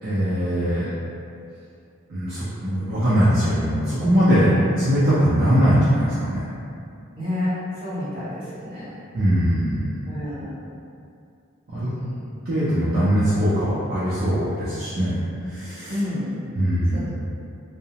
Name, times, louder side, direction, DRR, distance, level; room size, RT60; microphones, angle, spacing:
voice 1, 0.0-0.9 2.1-6.4 9.1-10.1 11.7-11.9 12.4-15.1 15.4-16.0 16.6-17.1, equal, 45° right, -11 dB, 0.5 m, -21 dB
voice 2, 7.2-8.9 10.1-10.8 11.9-12.4 15.9-16.4 16.9-17.1, left 1 dB, 25° right, -14 dB, 1.3 m, -30 dB
2.7 x 2.0 x 2.8 m, 2.5 s
head